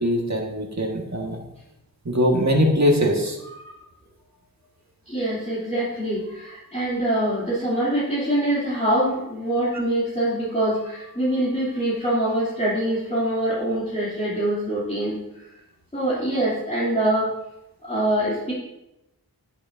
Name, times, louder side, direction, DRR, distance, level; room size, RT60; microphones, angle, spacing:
voice 1, 0.0-1.4 2.0-3.4, equal, 45° right, 1 dB, 1.7 m, -21 dB
voice 2, 5.1-15.2 15.9-17.3 17.8-18.5, right 1 dB, 20° left, -9 dB, 2.9 m, -24 dB
11.0 x 8.3 x 2.7 m, 0.89 s
wide cardioid pair, 50°, 37 cm